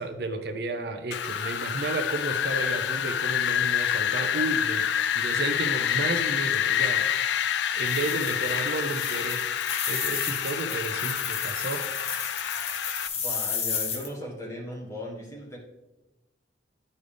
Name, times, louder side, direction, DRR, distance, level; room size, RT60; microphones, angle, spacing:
voice 1, 0.0-4.8 5.1-7.1 7.7-9.4 9.9-11.8, right 2 dB, 60° right, 7 dB, 0.6 m, -32 dB
Wind, 1.1-13.1, left 9 dB, 70° left, 0.4 m, -27 dB
sound 1, 7.8-14.1, left 6 dB, 35° left, 0.8 m, -33 dB
voice 2, 13.2-15.6, equal, 15° left, -3 dB, 1.5 m, -37 dB
9.5 x 5.4 x 3.4 m, 0.98 s
head